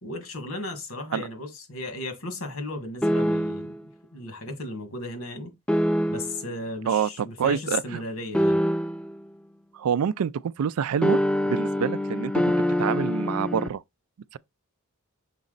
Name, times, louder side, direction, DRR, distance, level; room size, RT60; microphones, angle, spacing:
voice 1, 0.0-5.5 6.1-8.6, left 2 dB, 75° left, 1.7 m, -35 dB
sound 1, 3.0-3.8 5.7-6.5 8.3-9.2 11.0-13.7, equal, 5° left, 0.3 m, -25 dB
voice 2, 6.9-8.0 9.7-11.2 11.5-12.4 12.8-13.8 14.3-14.4, right 7 dB, 90° right, 0.4 m, -26 dB
5.9 x 4.1 x 3.9 m
head